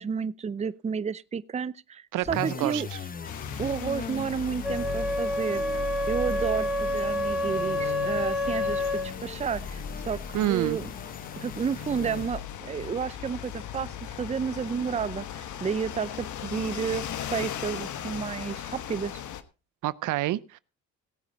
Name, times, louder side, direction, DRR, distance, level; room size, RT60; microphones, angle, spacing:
voice 1, 0.0-2.9 3.6-5.6 6.1-10.9 11.4-19.2, right 6 dB, 25° right, 0.5 m, -31 dB
voice 2, 2.1-2.8 10.3-10.8 19.8-20.6, right 15 dB, 85° right, 0.7 m, -27 dB
sound 1, 2.2-12.6, left 5 dB, 30° left, 0.8 m, -38 dB
sound 2, 3.2-19.4, left 10 dB, 75° left, 1.3 m, -39 dB
Wind instrument woodwind instrument, 4.6-9.1, left 1 dB, 5° right, 1.9 m, -28 dB
17.5 x 8.2 x 4.1 m
cardioid pair, 90°, 30 cm